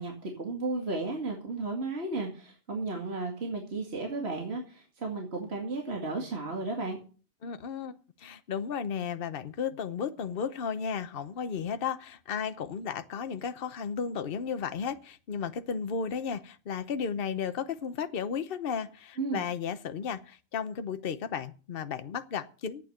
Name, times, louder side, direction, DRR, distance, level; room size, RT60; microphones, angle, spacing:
voice 1, 0.0-7.0 19.2-19.4, right 3 dB, 50° right, 1 dB, 2.4 m, -34 dB
voice 2, 7.4-7.9 8.2-22.8, left 6 dB, 45° left, 10 dB, 1.0 m, -34 dB
12.0 x 8.9 x 6.5 m, 0.39 s
omnidirectional pair, 1.4 m